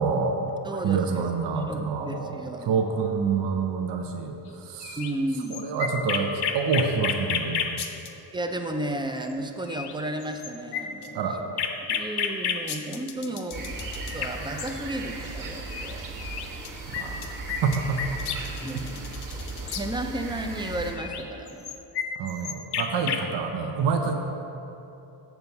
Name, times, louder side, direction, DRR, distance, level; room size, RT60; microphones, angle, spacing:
voice 1, 0.0-5.0 5.5-7.7 11.1-11.4 17.0-17.3 17.6-18.2 18.7-18.8 22.2-24.2, right 5 dB, 65° right, 4 dB, 0.7 m, -27 dB
voice 2, 0.6-2.7 5.0-5.8 8.3-11.2 11.8-16.0 18.6-19.0 19.3-21.7 23.1-23.2, right 1 dB, 10° right, 5 dB, 0.3 m, -33 dB
sound 1, 4.8-8.1 9.3-9.4 9.7-9.9 10.2-14.7 15.7-19.9 21.0-23.2, left 7 dB, 60° left, 0.7 m, -31 dB
sound 2, 13.5-20.9, right 2 dB, 45° right, 1.1 m, -37 dB
6.9 x 4.7 x 6.9 m, 3.0 s
cardioid pair, 135°, 45 cm